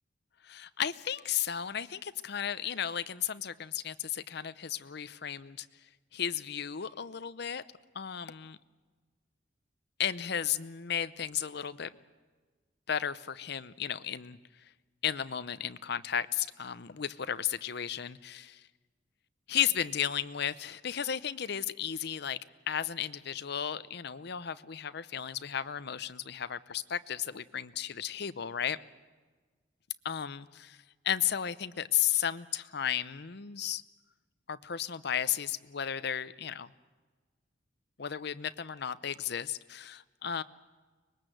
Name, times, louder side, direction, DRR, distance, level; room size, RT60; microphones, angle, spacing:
voice 1, 0.4-5.7 6.1-7.6 7.9-8.6 10.0-11.9 12.9-14.7 15.0-18.7 19.5-22.4 22.7-28.8 30.0-33.8 34.5-36.7 38.0-40.4, left 9 dB, 60° left, 14 dB, 0.7 m, -34 dB
24.5 x 20.5 x 7.9 m, 1.4 s
head